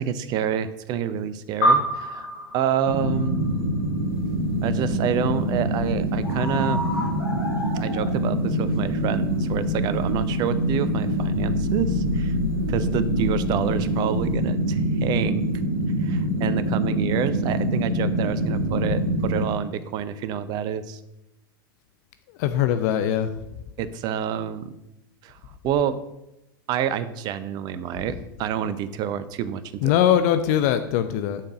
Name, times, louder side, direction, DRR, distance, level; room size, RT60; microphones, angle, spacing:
voice 1, 0.0-3.6 4.6-6.8 7.7-12.3 12.7-15.4 16.0-21.0 23.8-24.7 25.2-25.4 25.6-26.0 26.7-29.9, right 9 dB, 35° right, 14 dB, 0.6 m, -28 dB
sound 1, 1.6-4.3, equal, 65° left, 1.1 m, -26 dB
sound 2, 2.9-19.4, equal, 80° right, 1.2 m, -25 dB
sound 3, 4.1-14.3, left 2 dB, 85° left, 1.4 m, -35 dB
voice 2, 22.4-23.3 29.8-31.4, left 10 dB, 45° left, 10 dB, 0.5 m, -21 dB
7.3 x 4.6 x 6.2 m, 0.89 s
figure-of-eight pair, 90°, 12 cm